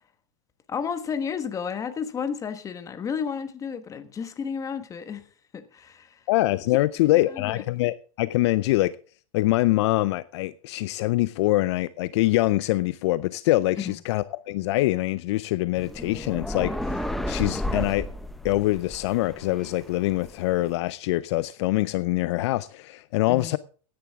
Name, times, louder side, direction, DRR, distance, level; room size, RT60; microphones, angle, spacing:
voice 1, 0.7-5.3 5.5-6.2 7.0-7.6 13.8-14.0 23.3-23.5, left 6 dB, 20° left, 1.3 m, -32 dB
voice 2, 6.3-8.9 9.3-18.1 18.4-23.6, left 17 dB, 55° left, 0.5 m, -24 dB
sound 1, 15.8-20.7, left 1 dB, ahead, 0.7 m, -33 dB
15.5 x 10.5 x 3.6 m
hypercardioid pair, 130°, 17 cm